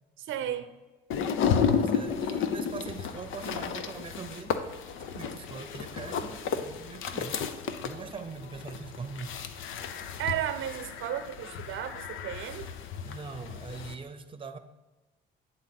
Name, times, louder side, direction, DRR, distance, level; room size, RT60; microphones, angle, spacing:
voice 1, 0.2-0.7 10.2-12.7, right 10 dB, 80° right, 9 dB, 0.6 m, -34 dB
sound 1, 1.1-13.9, left 7 dB, 80° left, 0.6 m, -33 dB
voice 2, 1.7-7.4 7.8-9.4 13.0-14.6, right 5 dB, 25° right, 8 dB, 0.7 m, -42 dB
8.9 x 3.9 x 5.9 m, 1.2 s
cardioid pair, 90°, 20 cm